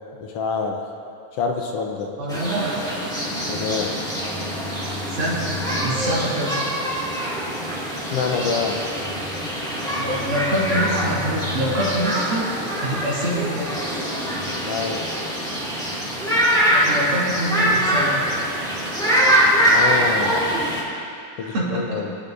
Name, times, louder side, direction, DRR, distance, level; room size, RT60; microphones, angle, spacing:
voice 1, 0.2-0.8 1.4-2.1 3.5-3.9 8.0-8.8 14.6-15.0 19.6-20.4 21.4-22.1, left 5 dB, 80° left, 2 dB, 1.4 m, -26 dB
voice 2, 2.2-2.7 5.1-5.5 5.8-6.6 10.0-13.7 16.7-18.4 21.5-22.0, right 1 dB, 80° right, -7 dB, 4.3 m, -25 dB
sound 1, 2.3-20.8, equal, ahead, 1.4 m, -23 dB
23.0 x 11.5 x 2.6 m, 2.5 s
omnidirectional pair, 3.6 m